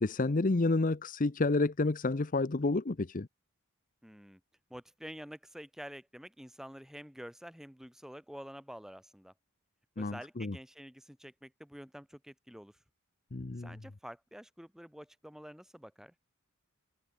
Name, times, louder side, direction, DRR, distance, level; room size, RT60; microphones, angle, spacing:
voice 1, 0.0-3.3 10.0-10.6 13.3-13.8, left 3 dB, 40° left, 0.7 m, -30 dB
voice 2, 4.0-4.4 4.7-9.3 10.0-12.7 13.6-16.1, equal, ahead, 0.9 m, -48 dB
head